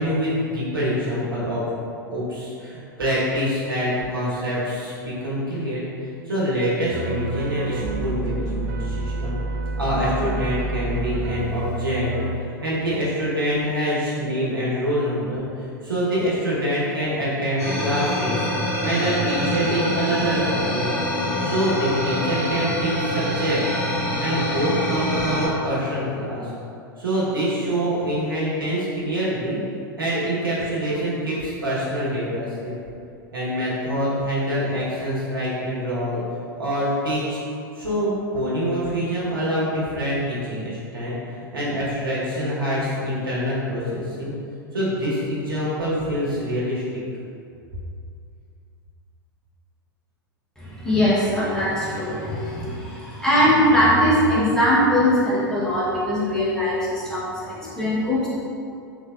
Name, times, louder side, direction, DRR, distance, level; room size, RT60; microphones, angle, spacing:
voice 1, 0.0-1.6 2.1-5.9 6.3-9.4 9.8-12.3 12.6-18.5 18.8-20.9 21.4-23.9 24.2-26.5 27.0-29.6 30.0-32.7 33.3-36.2 36.6-37.4 37.7-44.3 44.7-46.8, equal, 85° right, -7 dB, 1.1 m, -25 dB
sound 1, 6.9-12.4, right 2 dB, 65° right, 0.4 m, -28 dB
sound 2, 17.6-25.5, left 1 dB, 25° left, 1.5 m, -25 dB
voice 2, 50.6-58.3, equal, 5° left, -9 dB, 0.9 m, -21 dB
3.4 x 3.3 x 2.4 m, 2.5 s
figure-of-eight pair, 95°, 11 cm